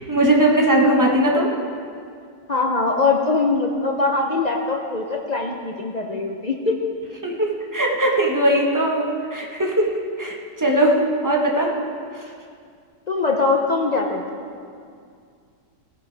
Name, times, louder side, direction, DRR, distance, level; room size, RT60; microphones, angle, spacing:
voice 1, 0.1-1.5 7.2-11.8 12.1-12.2, right 1 dB, 15° right, -1 dB, 1.0 m, -20 dB
voice 2, 2.5-6.8 13.1-14.2, left 3 dB, 55° left, 1 dB, 0.4 m, -22 dB
18.0 x 10.5 x 3.4 m, 2.3 s
omnidirectional pair, 1.8 m